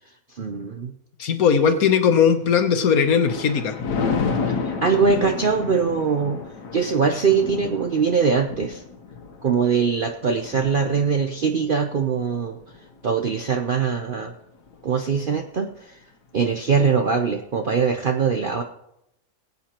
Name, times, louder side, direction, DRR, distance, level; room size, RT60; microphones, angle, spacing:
voice 1, 0.3-0.9 4.5-6.4 6.7-8.8 9.4-12.6 13.0-14.3 14.8-16.0 16.3-18.6, right 5 dB, 55° right, 4 dB, 0.5 m, -22 dB
voice 2, 1.2-3.7, left 7 dB, 65° left, 7 dB, 1.4 m, -18 dB
Thunder, 2.7-14.2 14.7-15.0, left 5 dB, 85° left, 1.6 m, -31 dB
21.0 x 8.4 x 2.9 m, 0.83 s
omnidirectional pair, 1.7 m